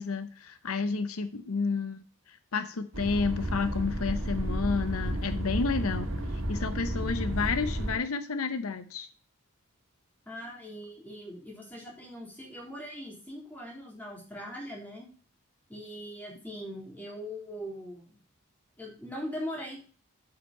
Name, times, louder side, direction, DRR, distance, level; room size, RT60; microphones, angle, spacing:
voice 1, 0.0-6.1 6.5-9.1, left 4 dB, 80° left, 11 dB, 0.8 m, -31 dB
sound 1, 2.9-8.0, right 1 dB, 65° right, 1.8 m, -32 dB
voice 2, 10.3-15.1 15.7-18.1 18.8-19.9, equal, 10° left, -3 dB, 3.7 m, -41 dB
8.4 x 5.8 x 5.4 m, 0.40 s
head